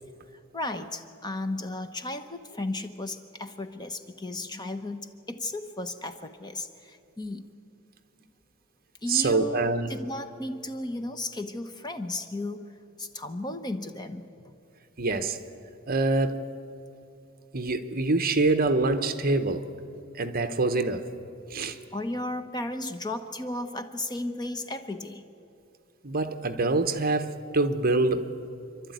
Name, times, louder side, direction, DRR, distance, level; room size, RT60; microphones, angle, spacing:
voice 1, 0.3-7.5 9.0-12.6 13.0-14.5 21.9-25.2, left 2 dB, 20° left, 8 dB, 0.9 m, -35 dB
voice 2, 9.1-9.9 15.0-15.4 15.9-16.4 17.5-19.7 20.1-21.1 21.5-21.8 26.0-28.3, right 3 dB, 45° right, 9 dB, 1.1 m, -25 dB
27.5 x 12.0 x 9.4 m, 2.7 s
head